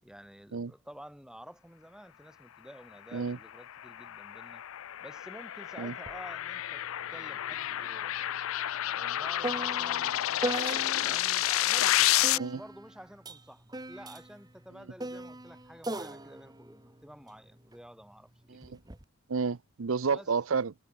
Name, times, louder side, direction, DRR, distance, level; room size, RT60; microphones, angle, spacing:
voice 1, 0.0-4.6 5.0-6.9 7.1-8.2 8.9-18.8 20.1-20.3, equal, 5° right, 7.7 m, -50 dB
sound 1, 3.5-12.4, left 13 dB, 80° left, 0.4 m, -30 dB
sound 2, 6.1-6.2 6.5-11.3 12.2-17.8 18.6-19.0, right 1 dB, 20° right, 1.5 m, -39 dB
voice 2, 19.3-20.7, right 5 dB, 75° right, 0.6 m, -31 dB
head